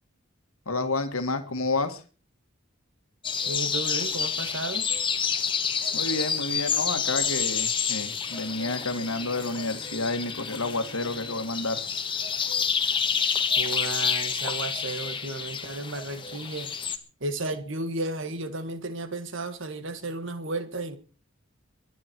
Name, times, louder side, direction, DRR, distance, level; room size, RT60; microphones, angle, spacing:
voice 1, 0.7-2.0 5.9-11.9, left 2 dB, 75° left, 1.9 m, -30 dB
sound 1, 3.2-17.0, left 6 dB, 25° left, 1.5 m, -29 dB
voice 2, 3.5-4.9 13.6-16.7 17.2-21.0, right 2 dB, 60° right, 1.8 m, -33 dB
Bowed string instrument, 8.3-13.2, left 1 dB, 90° right, 2.6 m, -51 dB
23.5 x 10.0 x 4.6 m
head